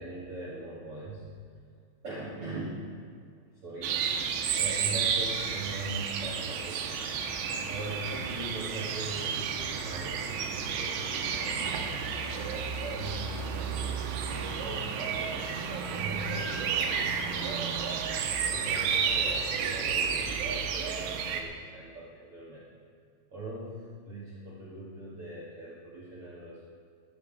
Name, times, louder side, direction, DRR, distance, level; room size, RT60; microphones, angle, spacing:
voice 1, 0.0-1.4 2.0-2.9 3.5-4.1 4.5-7.1 7.7-12.4 12.9-15.5 15.9-17.9 18.4-22.7 23.3-26.7, right 1 dB, 50° right, -6 dB, 1.7 m, -41 dB
sound 1, 3.8-21.4, right 6 dB, 85° right, 3.4 m, -31 dB
13.5 x 13.0 x 5.1 m, 2.2 s
omnidirectional pair, 5.4 m